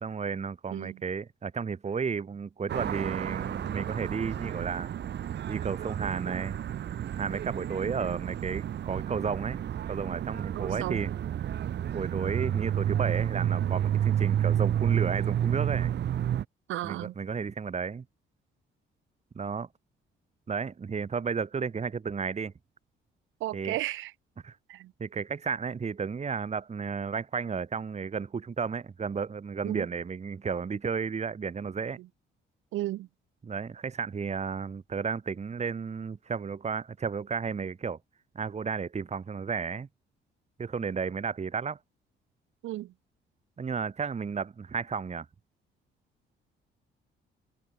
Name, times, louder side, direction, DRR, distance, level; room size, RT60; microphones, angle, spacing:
voice 1, 0.0-4.9 5.5-6.6 7.2-9.6 9.9-11.1 11.9-16.0 16.8-18.0 19.4-19.7 20.5-22.5 23.5-23.8 24.4-24.6 25.0-32.0 33.4-38.0 38.4-39.9 40.6-41.8 43.6-45.3, right 5 dB, 35° right, 1.8 m, -33 dB
sound 1, 2.7-16.4, right 10 dB, 60° right, 1.3 m, -30 dB
voice 2, 10.6-11.1 16.7-17.1 23.4-24.1 24.7-24.9 29.6-29.9 32.7-33.1 42.6-42.9, right 15 dB, 85° right, 0.9 m, -34 dB
cardioid pair, 90°, 20 cm